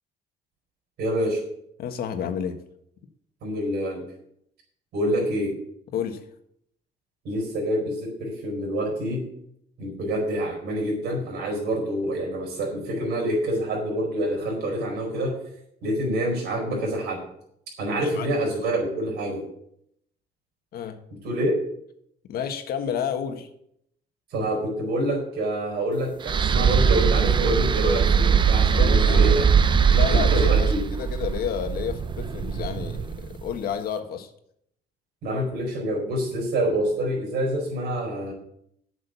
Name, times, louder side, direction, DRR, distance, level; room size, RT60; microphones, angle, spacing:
voice 1, 1.0-1.4 3.4-4.0 4.9-5.6 7.2-9.3 9.8-15.4 15.8-17.2 17.8-19.5 21.1-21.5 24.3-29.5 30.0-30.9 35.2-38.3, right 1 dB, 75° right, -1 dB, 4.6 m, -27 dB
voice 2, 1.8-2.6 5.9-6.2 17.8-18.3 20.7-21.0 22.2-23.5 28.8-29.3 29.9-34.3, left 8 dB, 65° left, 7 dB, 1.5 m, -30 dB
sound 1, 26.2-33.4, right 7 dB, 30° right, 0.6 m, -21 dB
8.4 x 6.6 x 8.1 m, 0.72 s
cardioid pair, 110°, 17 cm